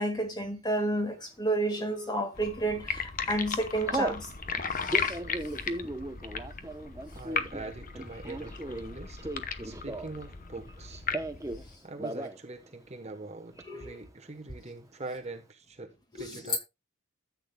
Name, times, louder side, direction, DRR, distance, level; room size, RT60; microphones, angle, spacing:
voice 1, 0.0-4.3 4.7-5.2 5.7-5.8 13.7-13.9 16.2-16.6, right 1 dB, 20° left, 1.8 m, -31 dB
Telephone, 1.7-2.2 2.8-3.1 3.3-4.2 4.8-10.3 10.5-11.6 11.9-12.4 12.7-12.8 13.0-13.6, right 2 dB, 15° right, 0.8 m, -37 dB
sound 1, 2.3-11.8, left 6 dB, 40° left, 0.9 m, -36 dB
voice 2, 7.1-9.2 9.6-11.0 11.8-16.6, right 2 dB, 30° right, 1.1 m, -43 dB
14.0 x 8.6 x 2.3 m
head